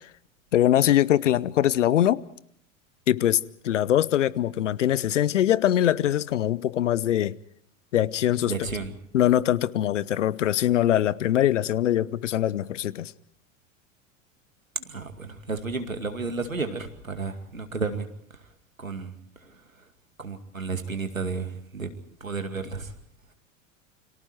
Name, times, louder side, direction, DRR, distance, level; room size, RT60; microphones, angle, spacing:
voice 1, 0.5-2.2 3.1-7.4 7.9-8.5 9.1-13.1, left 12 dB, 65° left, 0.9 m, -22 dB
voice 2, 8.5-8.9 14.8-18.1 18.8-19.1 19.4-19.6 20.2-21.9 22.2-22.9, right 4 dB, 85° right, 2.4 m, -32 dB
29.5 x 24.5 x 4.6 m
figure-of-eight pair, 85°, 39 cm